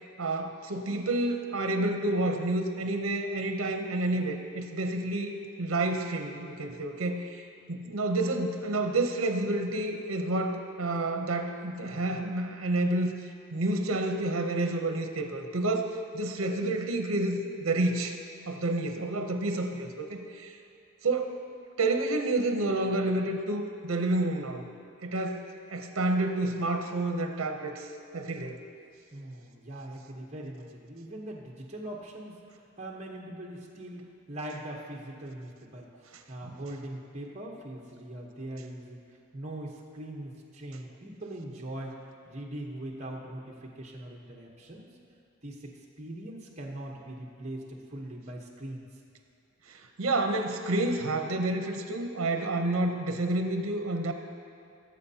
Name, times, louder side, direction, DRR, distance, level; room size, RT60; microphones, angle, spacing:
voice 1, 0.2-7.4 7.7-13.1 13.5-18.2 18.5-20.6 21.0-21.4 21.8-24.6 25.0-27.9 28.1-28.6 36.4-36.5 49.7-54.1, right 2 dB, 75° right, 5 dB, 0.7 m, -29 dB
voice 2, 29.1-35.9 36.3-39.0 39.3-42.0 42.3-44.9 45.4-48.9, right 1 dB, 30° right, -1 dB, 0.9 m, -41 dB
17.5 x 7.5 x 2.8 m, 2.5 s
head